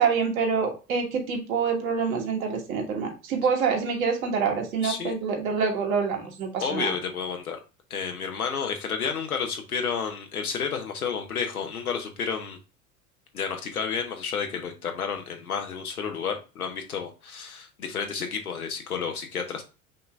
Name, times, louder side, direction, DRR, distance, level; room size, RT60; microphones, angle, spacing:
voice 1, 0.0-6.9, right 5 dB, 70° right, 2 dB, 1.5 m, -26 dB
voice 2, 4.8-5.1 6.6-7.6 7.9-12.6 13.3-19.6, left 6 dB, 85° left, 4 dB, 1.0 m, -31 dB
5.6 x 2.7 x 3.2 m, 0.31 s
figure-of-eight pair, 80°, 43 cm